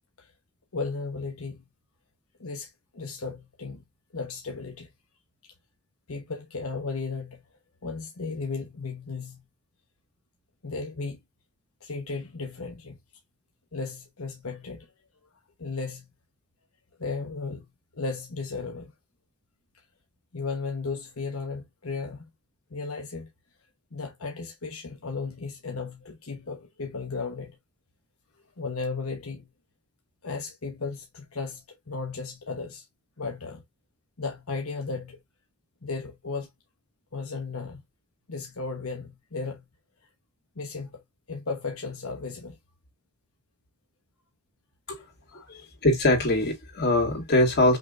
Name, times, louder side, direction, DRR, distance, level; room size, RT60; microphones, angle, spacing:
voice 1, 0.7-1.6 2.4-3.8 4.1-4.9 5.4-5.5 6.1-7.4 7.8-9.4 10.6-11.2 11.8-13.0 13.7-14.9 15.6-16.1 17.0-17.7 17.9-18.9 20.3-22.3 22.7-23.3 23.9-27.6 28.6-29.5 30.2-32.8 33.2-33.6 34.2-35.2 35.8-36.5 37.1-37.8 38.3-39.6 40.6-41.0 41.3-42.6 45.3-45.5, left 4 dB, 85° left, 1.2 m, -35 dB
voice 2, 45.5-47.8, left 1 dB, 50° left, 2.7 m, -22 dB
5.9 x 3.4 x 2.6 m
head